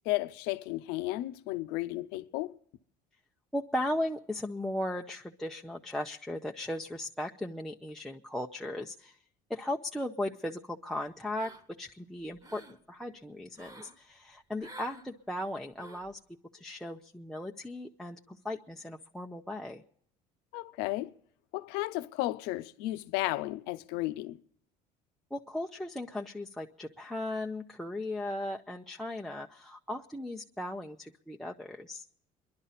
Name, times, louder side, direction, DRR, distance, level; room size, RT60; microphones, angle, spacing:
voice 1, 0.1-2.5 20.5-21.1 21.5-24.4, left 18 dB, 85° left, 0.7 m, -33 dB
voice 2, 3.5-9.2 9.5-11.5 11.8-12.6 12.9-16.2 16.5-19.8 25.3-32.1, left 1 dB, ahead, 0.5 m, -37 dB
sound 1, 11.4-11.9 12.2-12.8 13.5-14.0 14.6-15.1 15.8-16.1, right 2 dB, 20° right, 1.3 m, -50 dB
28.0 x 11.5 x 4.1 m
cardioid pair, 135°, 16 cm